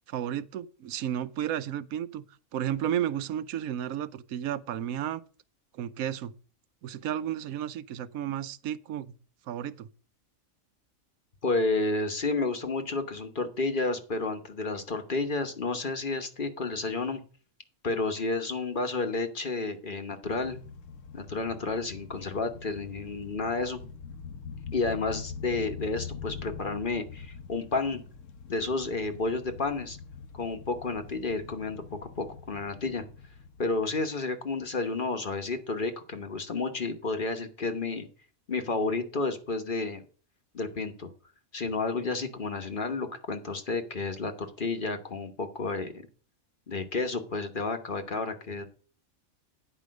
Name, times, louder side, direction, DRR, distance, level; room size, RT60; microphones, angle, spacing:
voice 1, 0.1-2.3 2.5-5.2 5.7-6.3 6.8-9.1 9.5-9.9, right 10 dB, 90° right, 1.1 m, -32 dB
voice 2, 11.4-17.2 17.8-20.6 21.1-23.8 24.7-28.0 28.5-30.0 30.3-31.8 32.2-33.0 33.6-38.1 38.5-40.0 40.5-41.1 41.5-45.9 46.7-48.7, left 3 dB, 40° left, 1.2 m, -31 dB
sound 1, 20.2-34.1, left 6 dB, 65° left, 1.2 m, -44 dB
10.0 x 5.0 x 6.3 m
omnidirectional pair, 1.4 m